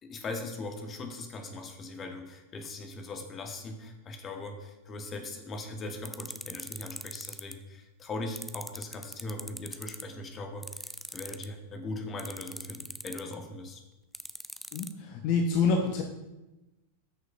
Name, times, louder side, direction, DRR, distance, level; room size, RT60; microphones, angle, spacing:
voice 1, 0.0-13.8, left 2 dB, 25° left, 4 dB, 1.3 m, -40 dB
sound 1, 6.0-7.5 8.4-10.0 10.6-11.5 12.2-13.3 14.1-14.9, equal, ahead, 0.4 m, -40 dB
voice 2, 14.7-16.0, left 4 dB, 45° left, 3 dB, 0.9 m, -27 dB
13.5 x 6.5 x 2.6 m, 1.0 s
figure-of-eight pair, 90°, 0 cm